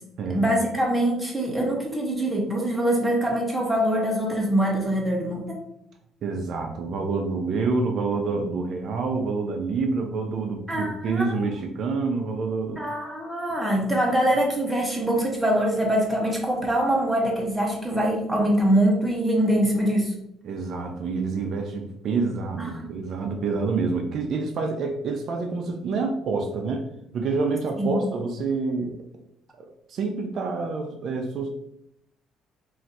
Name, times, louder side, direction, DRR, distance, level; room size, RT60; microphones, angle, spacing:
voice 1, 0.3-5.6 10.7-11.5 12.8-20.1 22.6-23.0 27.8-28.0, right 1 dB, 5° right, -2 dB, 0.7 m, -24 dB
voice 2, 6.2-12.8 20.4-26.8 27.1-29.0 29.6-31.5, right 4 dB, 50° right, 3 dB, 0.4 m, -27 dB
2.5 x 2.4 x 4.1 m, 0.76 s
cardioid pair, 135°, 0 cm